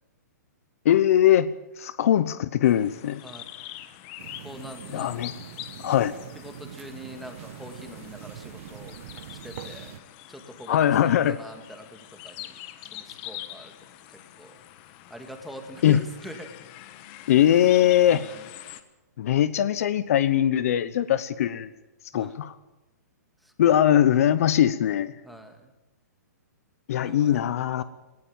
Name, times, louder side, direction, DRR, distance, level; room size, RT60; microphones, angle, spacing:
voice 1, 0.8-1.5 1.8-3.2 4.9-5.3 5.8-6.1 10.7-11.4 15.8-16.0 17.3-18.2 19.2-21.7 22.1-22.5 23.6-25.1 26.9-27.8, left 11 dB, 55° left, 15 dB, 0.9 m, -21 dB
sound 1, 2.6-18.8, left 14 dB, 35° left, 1.3 m, -44 dB
sound 2, 4.2-10.0, right 12 dB, 50° right, 1.2 m, -43 dB
voice 2, 4.4-5.2 6.4-9.0 9.3-10.0 10.3-12.6 12.9-13.7 14.1-14.5 15.1-16.5 18.1-18.4 22.1-22.4 23.4-23.8 25.2-25.7 27.0-27.4 27.8-27.9, equal, ahead, 4 dB, 2.1 m, -43 dB
18.5 x 16.0 x 8.8 m, 1.0 s
hypercardioid pair, 150°, 9 cm